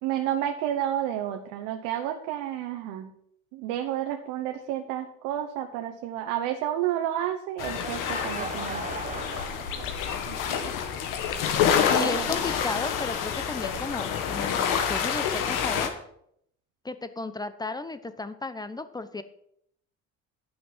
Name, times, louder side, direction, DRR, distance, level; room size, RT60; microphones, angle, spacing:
voice 1, 0.0-3.1 3.5-9.2 10.3-10.8 11.9-12.3, right 11 dB, 90° right, 4 dB, 1.0 m, -31 dB
sound 1, 7.6-15.9, left 7 dB, 80° left, 1.7 m, -28 dB
Laughter / Crowd, 7.6-10.5, right 5 dB, 25° right, 1.1 m, -39 dB
voice 2, 11.9-15.9 16.8-19.2, left 3 dB, 10° left, 12 dB, 0.8 m, -34 dB
10.0 x 6.0 x 7.3 m, 0.70 s
cardioid pair, 105°, 32 cm